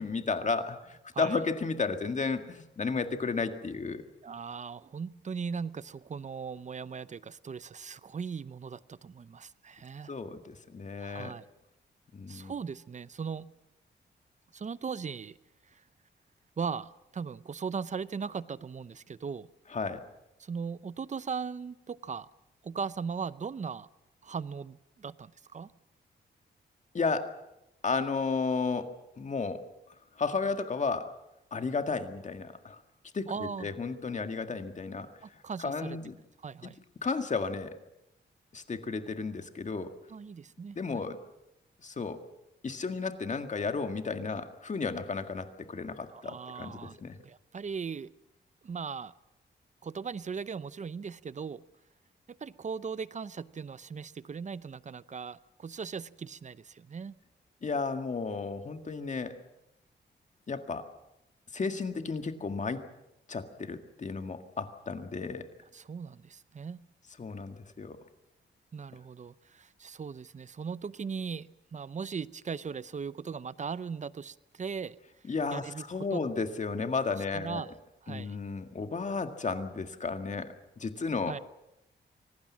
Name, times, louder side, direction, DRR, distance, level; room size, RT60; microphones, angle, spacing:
voice 1, 0.0-4.0 10.1-11.3 12.1-12.5 19.7-20.0 26.9-27.3 27.8-29.6 30.2-31.1 31.5-32.8 33.1-33.3 33.6-36.1 37.0-37.7 38.5-39.9 40.8-41.2 41.8-42.2 42.6-47.2 57.6-59.4 60.5-60.9 61.5-62.8 63.3-65.5 67.2-68.0 75.3-77.6 78.1-81.3, left 4 dB, 40° left, 7 dB, 1.9 m, -33 dB
voice 2, 4.2-10.1 11.0-11.5 12.3-13.5 14.5-15.4 15.7-15.8 16.6-19.5 20.4-22.3 22.6-23.9 24.2-25.7 33.3-33.7 35.4-36.0 36.4-36.8 40.1-41.0 46.1-48.1 48.6-49.1 49.8-51.6 52.3-57.2 65.7-66.8 68.7-75.0 75.5-76.2 77.2-77.7 78.0-78.4 81.3-81.4, right 6 dB, 40° right, 17 dB, 0.7 m, -38 dB
25.0 x 19.0 x 7.3 m, 0.89 s
wide cardioid pair, 110°, 19 cm